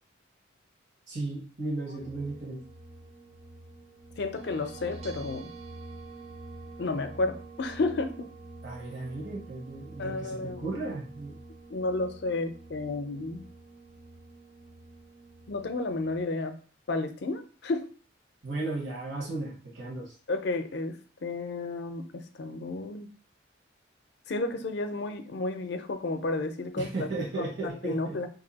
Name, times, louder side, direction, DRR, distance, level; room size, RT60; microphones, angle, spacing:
voice 1, 1.1-2.6 8.6-11.4 18.4-20.1 26.8-28.2, right 2 dB, 70° right, -3 dB, 1.2 m, -35 dB
sound 1, 2.0-16.2, right 2 dB, 35° right, 0.3 m, -47 dB
voice 2, 4.2-5.5 6.8-8.3 10.0-10.8 11.7-13.4 15.5-16.6 16.9-17.9 20.3-23.1 24.3-26.9 27.4-28.3, left 2 dB, 60° left, 8 dB, 0.5 m, -32 dB
2.8 x 2.6 x 4.0 m, 0.41 s
head